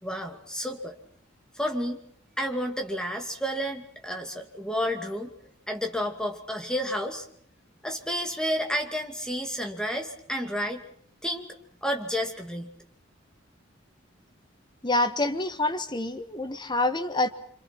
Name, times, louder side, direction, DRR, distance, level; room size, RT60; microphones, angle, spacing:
voice 1, 0.0-1.0 1.5-2.0 2.4-5.3 5.7-7.3 7.8-10.8 11.2-11.5 11.8-12.7, equal, 5° left, 4 dB, 2.5 m, -31 dB
voice 2, 14.8-17.3, left 2 dB, 20° left, 8 dB, 1.6 m, -27 dB
27.0 x 26.5 x 6.1 m, 0.63 s
head